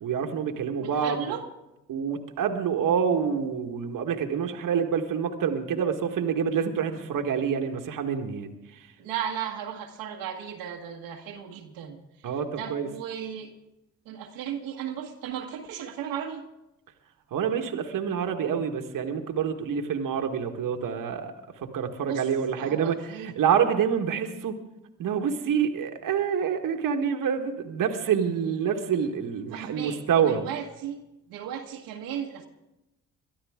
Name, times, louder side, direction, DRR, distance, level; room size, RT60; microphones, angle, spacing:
voice 1, 0.0-1.2 1.9-8.9 12.2-12.9 17.3-21.3 21.6-24.6 25.0-30.4, right 7 dB, 65° right, 5 dB, 1.6 m, -27 dB
voice 2, 0.8-1.4 9.0-13.5 14.0-16.4 22.1-22.3 22.6-23.4 29.5-31.0 31.3-32.5, right 9 dB, 85° right, 0 dB, 1.6 m, -36 dB
22.5 x 12.5 x 3.6 m, 0.92 s
supercardioid pair, 55°, 35 cm